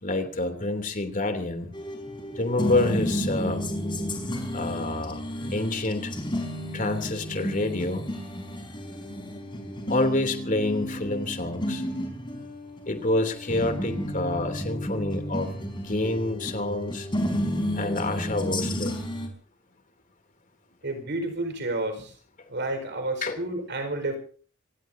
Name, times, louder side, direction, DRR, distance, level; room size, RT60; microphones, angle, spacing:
voice 1, 0.0-1.7 2.4-3.6 4.5-5.2 5.5-6.1 6.7-8.1 9.9-11.8 12.9-17.1 17.7-19.0 23.2-23.4, left 2 dB, 40° left, 6 dB, 3.0 m, -28 dB
sound 1, 1.7-19.3, equal, 25° left, 4.9 m, -32 dB
voice 2, 20.8-22.1 22.5-24.2, right 2 dB, 60° right, 7 dB, 4.9 m, -30 dB
26.5 x 19.5 x 2.8 m, 0.43 s
head